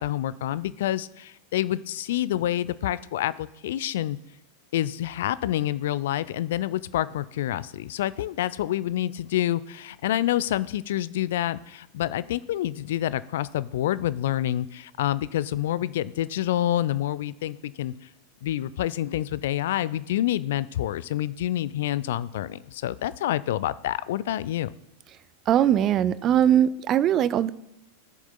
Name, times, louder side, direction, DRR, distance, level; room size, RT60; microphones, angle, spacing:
voice 1, 0.0-4.2 4.7-17.9 18.4-24.7, left 13 dB, 55° left, 18 dB, 0.3 m, -27 dB
voice 2, 25.5-27.5, right 10 dB, 30° right, 17 dB, 0.3 m, -21 dB
16.5 x 7.1 x 2.2 m, 0.88 s
figure-of-eight pair, 90°, 0 cm